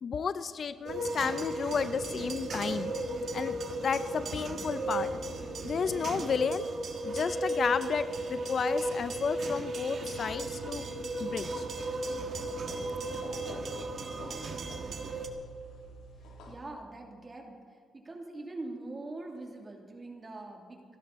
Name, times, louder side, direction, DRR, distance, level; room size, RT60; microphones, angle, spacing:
voice 1, 0.0-2.9 3.3-3.6 3.8-5.2 5.6-6.7 7.0-10.8 11.2-11.7, left 6 dB, 50° left, 13 dB, 0.6 m, -32 dB
sound 1, 0.9-15.3, right 2 dB, 55° right, 1.8 m, -35 dB
sound 2, 10.0-16.6, left 1 dB, 90° left, 3.1 m, -49 dB
voice 2, 16.5-17.6 17.9-20.8, right 2 dB, 25° right, 1 dB, 3.0 m, -43 dB
29.0 x 11.5 x 4.2 m, 2.3 s
cardioid pair, 90°, 0 cm